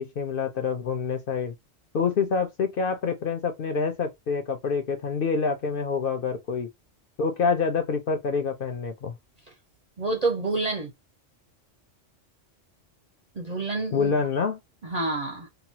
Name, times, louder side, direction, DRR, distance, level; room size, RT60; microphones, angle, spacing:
voice 1, 0.0-1.5 1.9-6.7 7.2-9.1 13.9-14.6, left 5 dB, 60° left, 0.6 m, -27 dB
voice 2, 10.0-10.9 13.3-14.1 14.8-15.5, right 3 dB, 50° right, 0.5 m, -28 dB
3.0 x 2.3 x 2.7 m
omnidirectional pair, 1.3 m